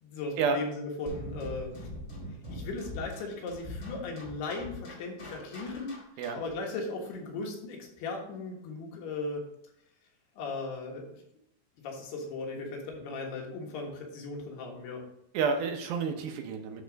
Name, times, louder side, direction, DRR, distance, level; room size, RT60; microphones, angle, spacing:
voice 1, 0.0-1.9 2.5-6.0 6.3-9.4 10.4-11.2 11.8-15.1, left 3 dB, 90° left, 0 dB, 3.5 m, -37 dB
sound 1, 1.1-6.6, left 1 dB, 30° left, 1.8 m, -42 dB
voice 2, 15.3-16.8, right 5 dB, 75° right, 4 dB, 2.5 m, -30 dB
10.5 x 3.8 x 5.1 m, 0.78 s
omnidirectional pair, 4.5 m